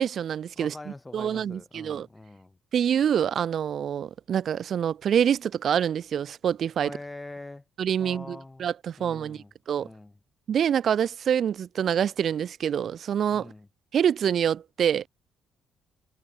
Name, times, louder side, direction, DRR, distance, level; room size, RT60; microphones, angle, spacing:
voice 1, 0.0-0.7 1.1-2.1 2.7-7.0 7.8-9.9 10.5-13.5 13.9-15.1, right 8 dB, 60° right, 0.3 m, -26 dB
voice 2, 0.6-2.6 6.8-7.6 8.0-8.7 9.0-9.5 9.8-10.2 13.3-13.7, left 2 dB, 15° left, 5.6 m, -43 dB
cardioid pair, 90°, 0 cm